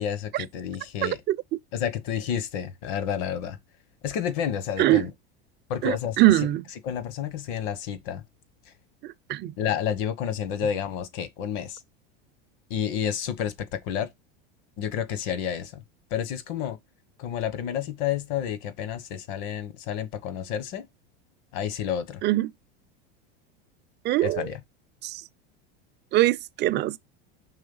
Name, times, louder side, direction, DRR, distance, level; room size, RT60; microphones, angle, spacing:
voice 1, 0.0-1.2 1.7-3.6 4.0-5.1 5.7-6.2 6.8-8.2 9.6-11.8 12.7-14.1 14.8-15.8 16.1-16.8 17.2-20.9 21.5-22.2 24.2-24.6, left 9 dB, 60° left, 1.4 m, -30 dB
voice 2, 1.0-1.4 4.8-5.1 5.8-6.6 9.0-9.5 22.2-22.5 24.0-24.5 25.0-25.2 26.1-27.0, right 15 dB, 35° right, 0.5 m, -23 dB
5.6 x 3.3 x 5.5 m
supercardioid pair, 110°, 30 cm